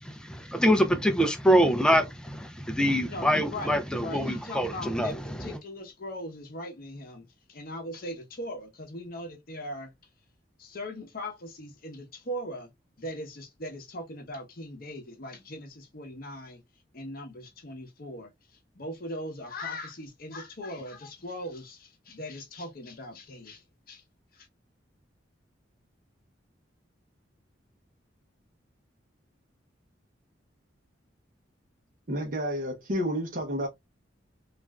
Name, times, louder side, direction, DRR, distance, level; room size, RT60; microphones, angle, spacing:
voice 1, 0.0-5.5, equal, 5° left, 0.4 m, -25 dB
voice 2, 3.0-9.9 10.6-12.7 13.0-16.6 16.9-18.3 18.7-24.0 24.3-24.5, left 1 dB, 50° left, 0.8 m, -40 dB
voice 3, 32.1-33.7, equal, 45° right, 0.7 m, -30 dB
3.2 x 2.4 x 2.2 m
head